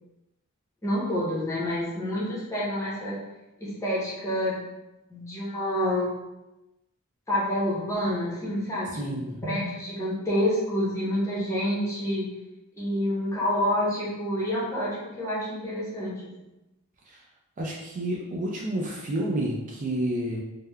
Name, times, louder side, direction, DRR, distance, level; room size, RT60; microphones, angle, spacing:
voice 1, 0.8-3.2 3.6-4.6 5.1-6.1 7.3-12.3 12.8-16.2, left 1 dB, 15° left, -7 dB, 0.7 m, -28 dB
voice 2, 8.9-9.4 17.1-17.2 17.6-20.4, right 1 dB, 35° right, -2 dB, 0.3 m, -30 dB
3.4 x 2.1 x 2.2 m, 0.97 s
head